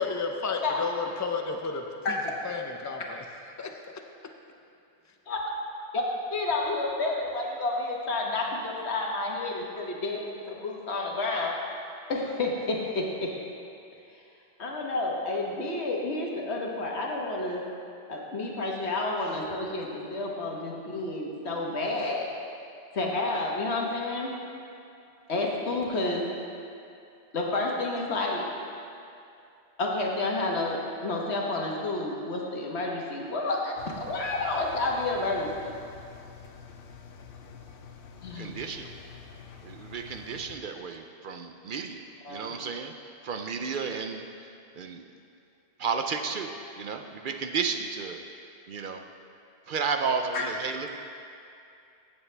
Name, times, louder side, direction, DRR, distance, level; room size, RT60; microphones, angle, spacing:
voice 1, 0.0-2.2 2.4-3.2 3.6-3.7, left 4 dB, 20° left, 3 dB, 0.5 m, -32 dB
voice 2, 6.3-11.5 12.1-13.3 14.6-17.6 18.1-22.3 22.9-24.3 25.3-26.2 27.3-28.5 29.8-35.7 38.2-38.6 42.2-42.5 50.3-50.4, left 2 dB, 85° left, -1 dB, 1.6 m, -30 dB
Engine, 33.8-40.6, left 6 dB, 60° left, 0.8 m, -47 dB
voice 3, 38.3-38.9 39.6-44.5 44.7-45.1 45.8-49.0 49.7-51.0, right 5 dB, 60° right, 5 dB, 0.7 m, -33 dB
16.5 x 7.2 x 3.3 m, 2.6 s
omnidirectional pair, 1.1 m